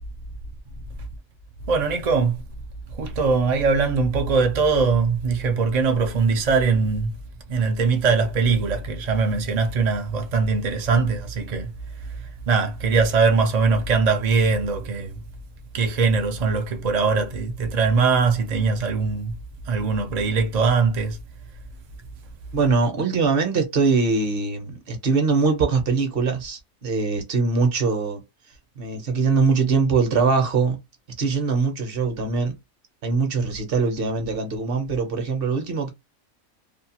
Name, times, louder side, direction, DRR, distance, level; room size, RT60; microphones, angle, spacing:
voice 1, 1.7-2.4 2.9-7.1 7.5-11.7 12.5-15.2 15.7-19.3 19.7-21.2, right 4 dB, 70° right, 0.3 m, -21 dB
voice 2, 22.5-28.2 28.8-30.8 31.2-32.5 33.0-35.9, right 4 dB, 50° right, 0.8 m, -22 dB
2.5 x 2.3 x 2.7 m
omnidirectional pair, 1.4 m